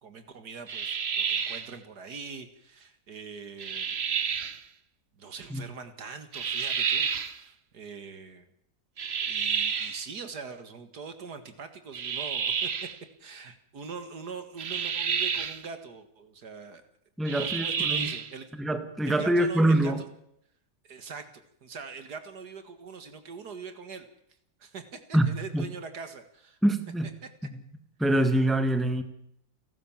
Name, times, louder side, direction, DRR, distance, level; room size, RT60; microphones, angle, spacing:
voice 1, 0.0-4.0 5.2-8.5 9.3-12.9 13.2-16.8 17.3-18.5 19.1-20.1 20.8-24.1 24.6-26.6 27.2-27.3, right 5 dB, 70° right, 9 dB, 2.3 m, -42 dB
sound 1, 0.7-1.7 3.6-4.6 6.3-7.4 9.0-10.1 11.9-13.0 14.6-15.6 17.3-18.3, right 7 dB, 45° right, 1.1 m, -30 dB
voice 2, 17.2-18.1 18.6-20.0 25.1-25.7 26.6-27.1 27.4-27.5 28.0-29.0, right 1 dB, ahead, 9 dB, 1.5 m, -25 dB
29.5 x 12.5 x 7.4 m, 0.74 s
omnidirectional pair, 1.8 m